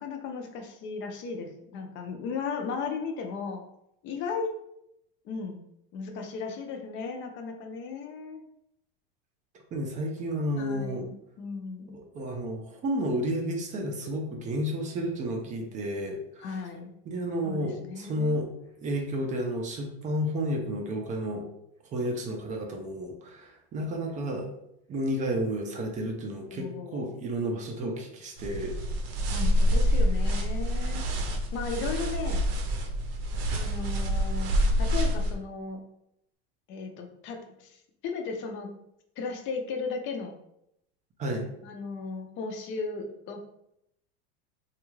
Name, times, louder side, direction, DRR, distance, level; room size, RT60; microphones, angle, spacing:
voice 1, 0.0-3.6 4.0-4.5 5.2-5.6 5.9-8.4 10.6-11.9 16.4-16.9 17.4-18.4 26.5-27.1 29.3-31.1 31.5-32.4 33.5-35.8 36.7-38.7 39.2-40.3 41.6-43.4, left 4 dB, 40° left, 4 dB, 0.5 m, -36 dB
voice 2, 9.7-11.1 11.9-16.6 17.1-18.5 18.8-21.5 21.9-24.5 24.9-28.8 41.2-41.5, equal, 25° right, 1 dB, 0.4 m, -31 dB
sound 1, 28.4-35.4, equal, 75° right, 0.7 m, -27 dB
3.4 x 2.4 x 3.1 m, 0.78 s
supercardioid pair, 145°, 31 cm